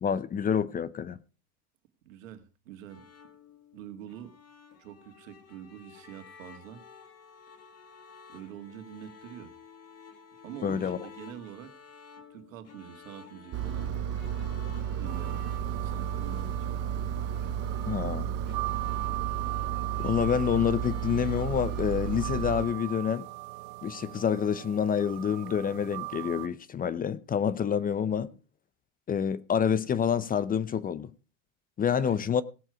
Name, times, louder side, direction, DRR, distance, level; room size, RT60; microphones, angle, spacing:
voice 1, 0.0-1.2 10.6-11.0 17.8-18.4 20.0-23.3 23.8-28.3 29.1-31.1 31.8-32.4, left 8 dB, 20° left, 0.6 m, -28 dB
voice 2, 2.0-3.1 3.7-4.3 4.8-6.8 8.3-9.5 10.4-11.7 12.3-13.9 15.0-16.8 32.0-32.3, right 10 dB, 80° right, 2.0 m, -45 dB
sound 1, 2.9-21.8, left 6 dB, 40° left, 2.1 m, -52 dB
Engine, 13.5-22.7, right 9 dB, 40° right, 1.0 m, -33 dB
sound 2, 15.0-26.5, right 23 dB, 60° right, 1.2 m, -40 dB
17.5 x 7.5 x 4.8 m
supercardioid pair, 110°, 39 cm